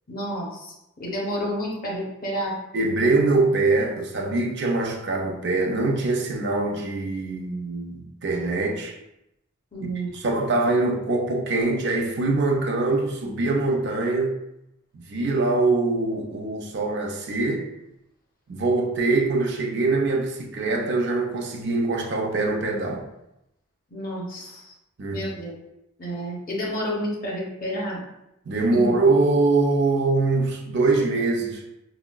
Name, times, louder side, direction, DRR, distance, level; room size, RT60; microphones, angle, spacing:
voice 1, 0.1-2.6 9.7-10.1 23.9-24.7 25.1-25.5 26.0-28.0 28.7-28.9, equal, 40° left, -3 dB, 0.8 m, -30 dB
voice 2, 2.7-8.9 10.1-14.3 14.9-17.7 18.5-23.1 25.0-25.3 28.5-31.6, right 3 dB, 50° right, 1 dB, 0.4 m, -23 dB
4.5 x 2.1 x 2.2 m, 0.85 s
head